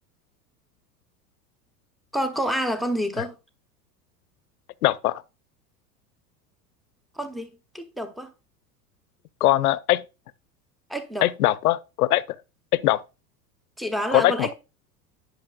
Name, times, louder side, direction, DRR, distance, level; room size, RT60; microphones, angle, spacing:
voice 1, 2.1-3.3 7.1-8.3 10.9-11.3 13.8-14.5, equal, ahead, 0.5 m, -28 dB
voice 2, 4.8-5.2 9.4-10.0 11.2-12.2 12.7-13.0 14.1-14.5, left 15 dB, 65° left, 0.6 m, -21 dB
10.5 x 5.9 x 2.3 m
figure-of-eight pair, 85°, 48 cm